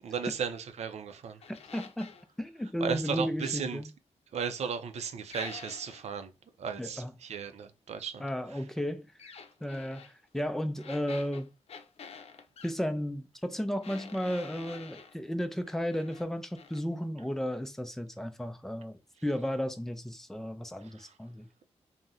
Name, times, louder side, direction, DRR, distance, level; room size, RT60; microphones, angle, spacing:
voice 1, 0.0-1.4 2.8-3.8 4.3-6.3 6.6-8.2 8.5-8.6 20.9-21.1, right 6 dB, 80° right, 0.4 m, -35 dB
sound 1, 1.4-2.3 5.3-6.1 9.2-10.1 10.8-12.8 13.8-15.2 15.6-16.3 16.6-16.8, left 6 dB, 65° left, 0.5 m, -48 dB
voice 2, 1.5-3.9 6.8-7.1 8.2-9.1 9.6-11.5 12.6-21.5, equal, 5° left, 0.4 m, -34 dB
2.6 x 2.1 x 3.5 m
wide cardioid pair, 135°, 11 cm